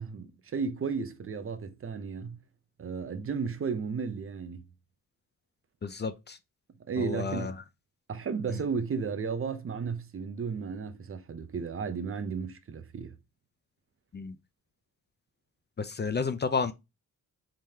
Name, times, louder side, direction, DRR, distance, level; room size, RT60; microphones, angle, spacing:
voice 1, 0.0-2.4 2.8-4.7 6.9-7.5 8.1-13.1, right 5 dB, 40° right, 0.7 m, -34 dB
voice 2, 5.8-6.4 7.0-7.5 8.5-8.6 14.1-14.4 15.8-16.7, left 5 dB, 35° left, 0.5 m, -31 dB
4.8 x 3.7 x 2.8 m
wide cardioid pair, 110°, 33 cm